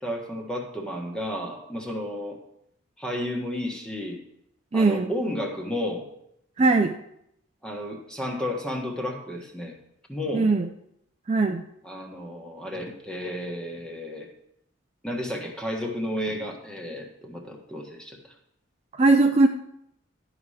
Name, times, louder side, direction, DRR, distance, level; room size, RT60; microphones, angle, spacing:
voice 1, 0.0-2.4 3.0-4.2 4.7-6.1 7.6-9.8 10.1-10.5 11.8-14.3 15.0-18.2, left 1 dB, 5° left, 1 dB, 1.4 m, -32 dB
voice 2, 4.7-5.1 6.6-6.9 10.3-10.6 11.3-11.6 19.0-19.5, right 3 dB, 30° right, 5 dB, 0.4 m, -19 dB
12.0 x 5.0 x 5.7 m, 0.76 s
head